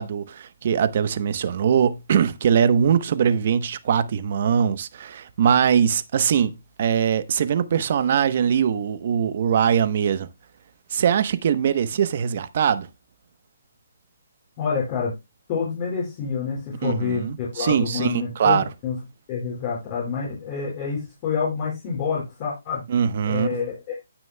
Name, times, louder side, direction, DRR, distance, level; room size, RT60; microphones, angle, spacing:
voice 1, 0.0-6.5 6.8-10.3 10.9-12.9 16.8-18.6 22.9-23.6, right 8 dB, 45° right, 0.9 m, -21 dB
voice 2, 14.6-15.1 15.5-19.0 19.3-22.8 23.3-24.0, left 6 dB, 30° left, 4.8 m, -27 dB
17.0 x 6.1 x 2.2 m
hypercardioid pair, 160°, 0 cm